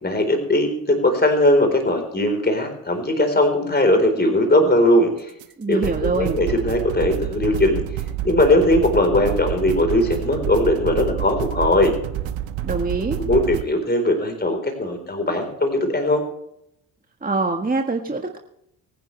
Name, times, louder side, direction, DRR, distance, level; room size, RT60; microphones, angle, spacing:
voice 1, 0.0-5.3 5.7-7.8 8.2-11.9 13.1-16.2, left 1 dB, 20° left, 5 dB, 4.3 m, -19 dB
sound 1, 5.4-5.5 5.8-13.6, right 12 dB, 70° right, 1.3 m, -28 dB
voice 2, 5.6-6.4 12.6-13.2 17.2-18.4, right 3 dB, 15° right, 3 dB, 1.7 m, -24 dB
24.5 x 10.5 x 3.4 m, 0.78 s
hypercardioid pair, 50°, 48 cm